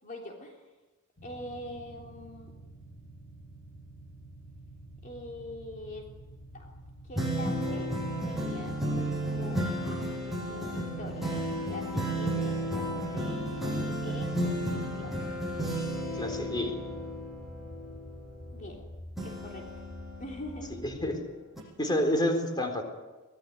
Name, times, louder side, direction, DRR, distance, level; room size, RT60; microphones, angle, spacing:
voice 1, 0.0-0.6 1.2-2.5 5.0-6.1 6.5-6.7 7.0-7.9 8.2-11.3 11.7-15.1 18.5-18.8 19.2-19.7 20.2-20.9, left 1 dB, 35° left, 0 dB, 3.4 m, -44 dB
sound 1, 1.2-21.1, equal, 70° left, 6.7 m, -49 dB
sound 2, 7.1-18.8 19.2-21.1 21.6-21.7, right 1 dB, ahead, 7.7 m, -33 dB
voice 2, 16.2-16.7 20.8-21.2 21.8-22.8, left 1 dB, 20° left, 4 dB, 4.0 m, -28 dB
24.5 x 18.5 x 9.5 m, 1.2 s
head